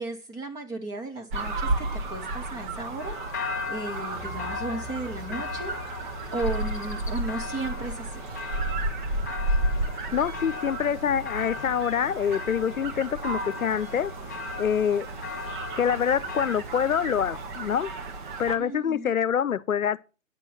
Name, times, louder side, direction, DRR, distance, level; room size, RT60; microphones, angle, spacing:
voice 1, 0.0-3.2 3.7-8.2 18.6-19.2, right 2 dB, 10° right, 0.9 m, -35 dB
sound 1, 1.3-18.6, right 2 dB, 35° right, 1.6 m, -33 dB
sound 2, 3.0-16.5, left 5 dB, 15° left, 0.5 m, -39 dB
sound 3, 4.1-8.5, left 2 dB, 90° right, 1.9 m, -46 dB
voice 2, 9.8-14.1 14.6-15.1 15.8-17.9 18.4-20.0, left 8 dB, 75° left, 0.7 m, -26 dB
9.0 x 6.1 x 5.7 m
figure-of-eight pair, 135°, 41 cm